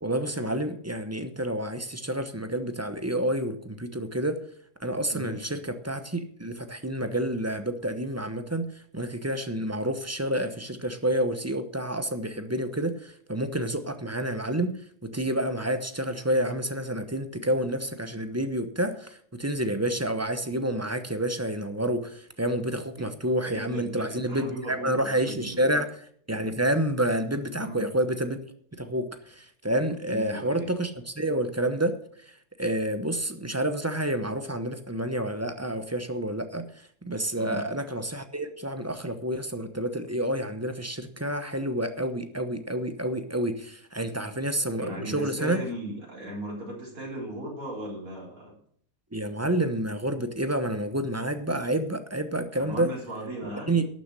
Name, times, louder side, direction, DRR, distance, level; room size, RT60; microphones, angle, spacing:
voice 1, 0.0-4.4 4.8-8.7 8.9-14.7 15.0-25.9 26.3-28.4 28.8-31.9 32.6-36.7 37.0-45.6 49.1-52.9 53.4-53.8, right 1 dB, 15° right, 9 dB, 0.8 m, -29 dB
voice 2, 23.4-25.7 27.5-27.8 30.1-30.7 37.4-37.6 44.8-48.5 52.6-53.8, right 1 dB, 80° right, -3 dB, 4.4 m, -37 dB
12.0 x 6.7 x 7.6 m, 0.62 s
omnidirectional pair, 1.5 m